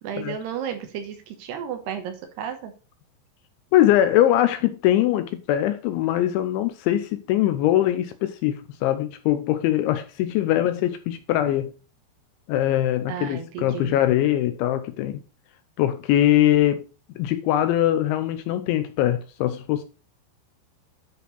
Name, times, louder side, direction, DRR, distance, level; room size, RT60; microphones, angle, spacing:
voice 1, 0.0-2.7 13.1-14.0, right 8 dB, 70° right, 2.8 m, -33 dB
voice 2, 3.7-11.7 12.5-15.2 15.8-16.8 17.2-19.8, left 12 dB, 85° left, 2.8 m, -22 dB
10.0 x 4.5 x 5.2 m
omnidirectional pair, 5.8 m